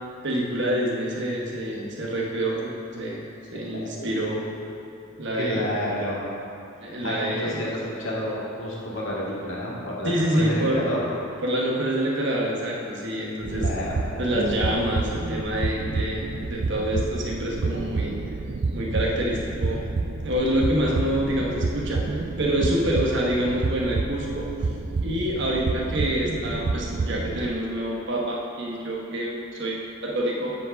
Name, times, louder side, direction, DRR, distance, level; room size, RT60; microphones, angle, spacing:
voice 1, 0.2-3.2 3.5-4.4 5.2-5.6 6.8-7.6 10.0-11.0 11.4-13.6 14.2-18.1 18.7-19.8 20.2-24.5 25.0-30.6, equal, 60° right, -2 dB, 1.2 m, -27 dB
voice 2, 3.7-4.2 5.3-6.2 7.0-11.1 13.5-14.2, equal, 70° left, -5 dB, 1.8 m, -30 dB
sound 1, 13.4-27.5, right 3 dB, 40° right, 0.3 m, -29 dB
8.1 x 5.3 x 5.1 m, 2.7 s
head